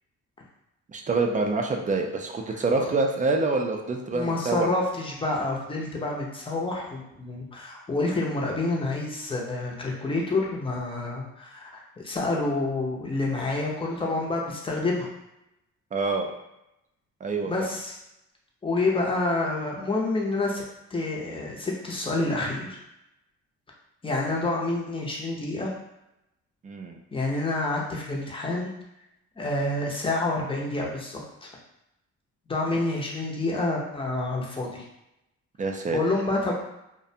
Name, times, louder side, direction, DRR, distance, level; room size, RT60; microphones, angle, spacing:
voice 1, 0.9-4.7 15.9-16.3 17.2-17.7 26.6-27.0 35.6-36.0, right 3 dB, 25° right, 2 dB, 0.4 m, -26 dB
voice 2, 2.5-2.9 4.1-15.1 17.5-17.9 18.6-20.6 20.9-22.8 24.0-25.7 27.1-28.7 29.4-31.5 32.5-34.8 35.9-36.6, left 2 dB, 20° left, -2 dB, 0.6 m, -28 dB
2.4 x 2.1 x 2.7 m, 0.87 s
cardioid pair, 90°, 30 cm